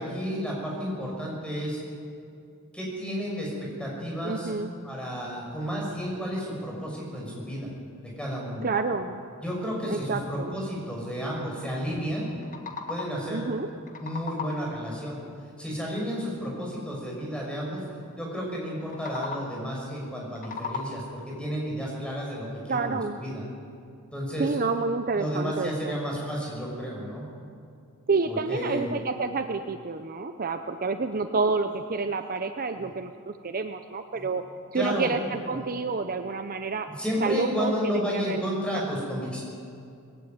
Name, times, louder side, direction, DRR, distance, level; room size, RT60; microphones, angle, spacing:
voice 1, 0.0-1.8 2.7-4.6 4.8-7.7 8.0-8.6 9.4-12.3 12.9-13.4 14.0-15.2 15.6-17.8 18.2-23.4 24.1-24.5 25.1-27.3 28.3-28.9 32.8-32.9 34.2-34.3 34.7-35.1 35.5-35.7 37.0-39.4, equal, 5° left, -2 dB, 6.1 m, -32 dB
voice 2, 4.2-4.7 8.6-9.2 9.9-10.5 13.3-13.7 22.7-23.2 24.4-26.0 28.1-34.4 34.7-36.9 37.2-38.8, right 4 dB, 40° right, 8 dB, 0.7 m, -29 dB
sound 1, 12.2-13.3 13.7-14.8 18.8-19.7 20.1-21.2, left 4 dB, 40° left, 1.8 m, -37 dB
20.0 x 16.5 x 9.5 m, 2.4 s
head